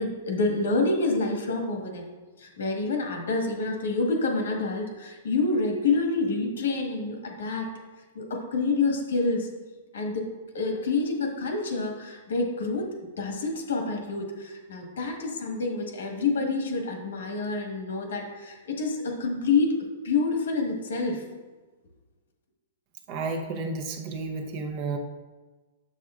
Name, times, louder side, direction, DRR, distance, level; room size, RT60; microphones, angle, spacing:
voice 1, 0.0-2.0 2.4-7.7 8.1-9.5 9.9-10.2 10.5-19.8 20.0-21.2, left 3 dB, 90° left, 2 dB, 1.5 m, -27 dB
voice 2, 23.1-25.0, right 3 dB, 40° right, 4 dB, 0.8 m, -32 dB
7.2 x 6.7 x 2.5 m, 1.3 s
hypercardioid pair, 145°, 0 cm